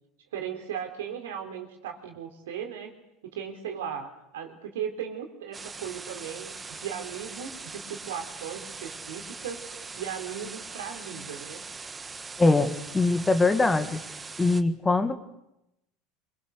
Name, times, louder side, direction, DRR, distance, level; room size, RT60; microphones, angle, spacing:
voice 1, 0.3-3.0 3.2-9.6 9.9-11.6, right 8 dB, 70° right, 5 dB, 3.8 m, -37 dB
sound 1, 5.5-14.6, right 4 dB, 20° right, 1.5 m, -41 dB
voice 2, 12.4-14.0 14.4-15.1, left 3 dB, 15° left, 9 dB, 2.1 m, -22 dB
27.0 x 24.0 x 6.6 m, 0.87 s
figure-of-eight pair, 75°, 0 cm